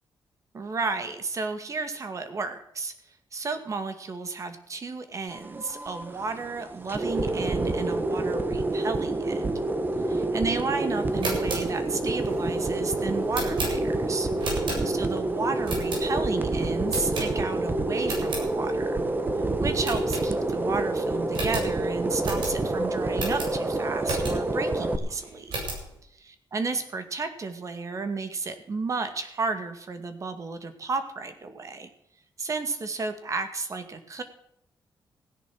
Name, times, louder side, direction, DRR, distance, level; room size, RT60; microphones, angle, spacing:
voice 1, 0.5-2.9 3.3-9.6 10.1-14.3 14.8-19.0 19.6-25.5 26.1-31.9 32.4-34.2, right 4 dB, 40° right, 9 dB, 2.1 m, -32 dB
sound 1, 5.3-25.0, right 2 dB, 25° right, 1.4 m, -28 dB
sound 2, 11.0-15.2 15.6-16.4 16.9-17.7 18.0-18.5 18.9-19.0 19.3-19.4 19.8-20.7 21.0-21.1 21.3-24.6 25.1-25.9, right 2 dB, 75° right, 7.8 m, -34 dB
16.0 x 10.5 x 6.3 m, 0.77 s
wide cardioid pair, 125°, 8 cm